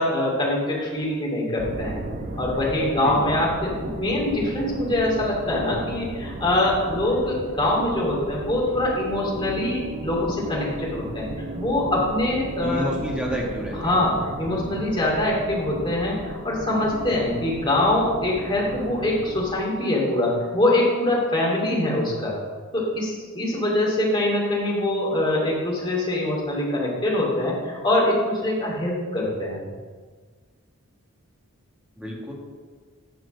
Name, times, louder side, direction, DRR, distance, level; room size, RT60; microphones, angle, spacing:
voice 1, 0.0-1.9 2.4-11.3 11.5-12.8 13.7-22.4 22.7-29.6, left 1 dB, 20° left, -4 dB, 2.3 m, -24 dB
sound 1, 1.6-19.5, right 1 dB, 35° right, 0.7 m, -35 dB
voice 2, 12.6-13.9 32.0-32.3, equal, 5° right, -3 dB, 1.6 m, -29 dB
9.5 x 4.3 x 7.2 m, 1.5 s
head